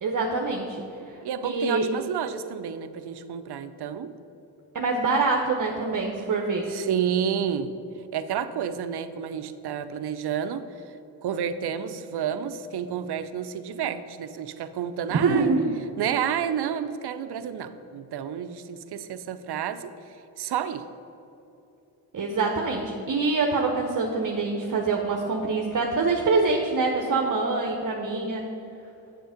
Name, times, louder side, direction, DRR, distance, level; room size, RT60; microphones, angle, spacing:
voice 1, 0.0-0.8 1.1-1.2 1.4-1.9 4.7-6.7 15.2-15.7 22.1-28.5, right 3 dB, 45° right, 1 dB, 1.0 m, -25 dB
voice 2, 1.2-4.1 6.7-7.7 8.1-10.7 11.2-15.5 16.0-19.9 20.4-20.8, right 8 dB, 65° right, 11 dB, 0.7 m, -30 dB
7.8 x 7.6 x 5.1 m, 3.0 s
supercardioid pair, 55°, 44 cm